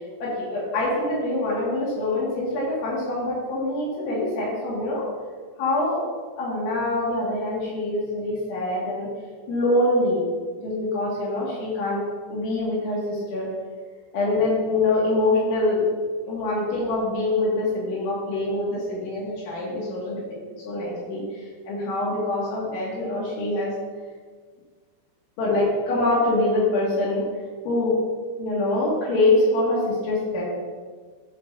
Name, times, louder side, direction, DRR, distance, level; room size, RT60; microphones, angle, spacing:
voice 1, 0.2-5.0 5.6-6.0 6.4-9.1 9.5-10.3 10.6-12.0 12.3-13.5 14.1-15.9 16.3-20.2 20.6-23.7 25.4-27.2 27.6-28.0 28.4-30.5, left 2 dB, 70° left, -6 dB, 4.6 m, -24 dB
16.5 x 5.8 x 2.8 m, 1.6 s
omnidirectional pair, 5.8 m